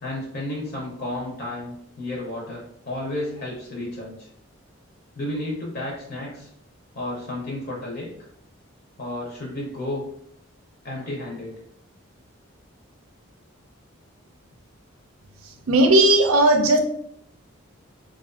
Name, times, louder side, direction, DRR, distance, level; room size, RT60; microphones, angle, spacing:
voice 1, 0.0-4.3 5.1-6.5 6.9-8.1 9.0-10.0 10.8-11.6, left 1 dB, 50° left, -3 dB, 0.6 m, -32 dB
voice 2, 15.7-16.8, right 1 dB, 90° right, 5 dB, 0.5 m, -16 dB
2.4 x 2.3 x 2.4 m, 0.69 s
head